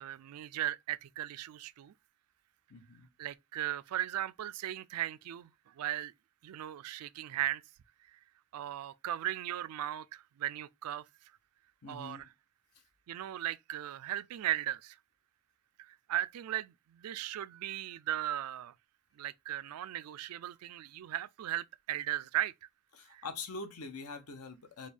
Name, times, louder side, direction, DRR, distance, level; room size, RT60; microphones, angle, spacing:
voice 1, 0.0-1.9 3.2-6.1 6.4-7.6 8.1-8.2 8.5-11.0 11.9-12.3 13.1-15.0 15.8-18.7 19.2-22.7 23.1-23.2, right 12 dB, 80° right, 0.3 m, -37 dB
voice 2, 2.7-3.1 11.8-12.3 22.9-24.9, left 3 dB, 85° left, 0.8 m, -44 dB
5.0 x 2.3 x 3.4 m
head